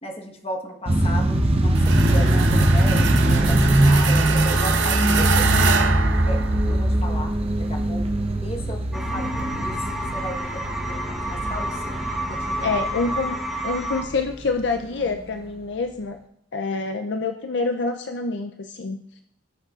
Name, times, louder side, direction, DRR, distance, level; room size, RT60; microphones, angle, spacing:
voice 1, 0.0-5.8 6.3-7.3 7.6-8.1 8.4-12.0 12.3-12.9, equal, 30° left, 2 dB, 1.2 m, -35 dB
sound 1, 0.9-14.0, right 1 dB, 30° right, 0.8 m, -21 dB
sound 2, 1.7-7.0, right 6 dB, 70° right, 0.9 m, -25 dB
sound 3, 8.9-14.0, right 1 dB, ahead, 1.0 m, -30 dB
voice 2, 12.6-13.4 13.6-16.2 16.5-19.0, left 4 dB, 60° left, 5 dB, 0.5 m, -26 dB
17.5 x 6.5 x 2.5 m, 0.74 s
head